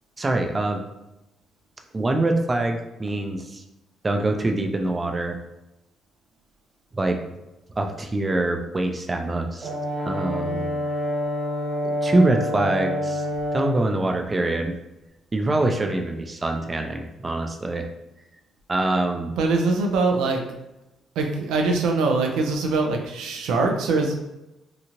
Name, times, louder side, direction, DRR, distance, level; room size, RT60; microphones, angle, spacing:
voice 1, 0.2-0.8 1.9-3.6 4.0-5.4 6.9-7.2 7.8-9.7 10.1-10.7 11.8-13.3 13.5-14.8 15.3-17.8 18.7-19.4, right 2 dB, 25° right, 4 dB, 0.4 m, -24 dB
Brass instrument, 9.6-13.8, left 1 dB, 45° right, 1.4 m, -27 dB
voice 2, 19.4-20.4 21.2-24.1, right 3 dB, 90° right, 2 dB, 0.4 m, -22 dB
2.9 x 2.4 x 2.8 m, 0.95 s
cardioid pair, 90°, 0 cm